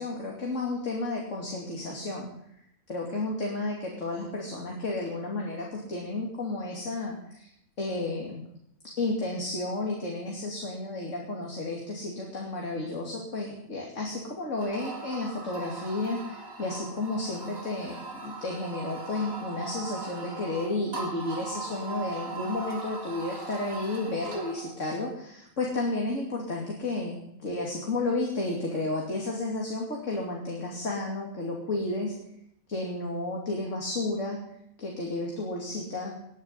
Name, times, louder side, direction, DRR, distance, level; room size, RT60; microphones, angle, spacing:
voice 1, 0.0-2.3 2.9-7.5 7.8-8.4 8.8-32.1 32.7-34.4 34.8-36.2, left 2 dB, 60° left, -1 dB, 3.1 m, -32 dB
sound 1, 14.6-24.7, right 3 dB, 75° right, 3.4 m, -39 dB
19.5 x 10.5 x 5.7 m, 0.76 s
omnidirectional pair, 1.4 m